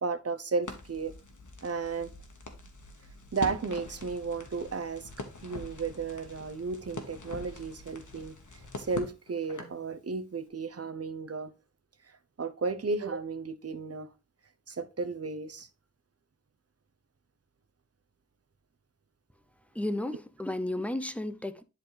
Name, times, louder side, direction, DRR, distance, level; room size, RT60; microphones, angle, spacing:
voice 1, 0.0-1.1 1.6-2.1 3.3-5.1 5.4-11.5 12.1-14.1 14.7-15.7, right 4 dB, 50° right, 0.8 m, -34 dB
Crackle, 0.6-9.8, left 3 dB, 80° left, 1.4 m, -44 dB
voice 2, 19.7-21.6, left 1 dB, 5° left, 0.7 m, -33 dB
10.5 x 4.2 x 3.3 m
wide cardioid pair, 70°, 30 cm